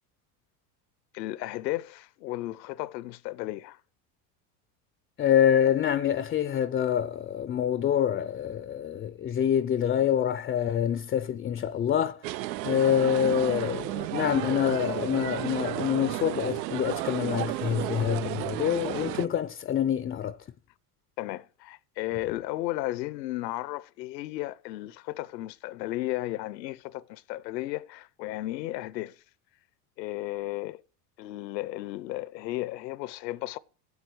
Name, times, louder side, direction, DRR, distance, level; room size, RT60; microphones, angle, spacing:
voice 1, 1.1-3.8 21.2-29.2 30.0-30.8 31.2-33.6, left 17 dB, 85° left, 0.8 m, -34 dB
voice 2, 5.2-12.2 12.6-20.4, left 9 dB, 20° left, 0.4 m, -26 dB
sound 1, 12.2-19.3, right 16 dB, 90° right, 0.6 m, -33 dB
8.3 x 8.2 x 7.9 m
supercardioid pair, 110°, 49 cm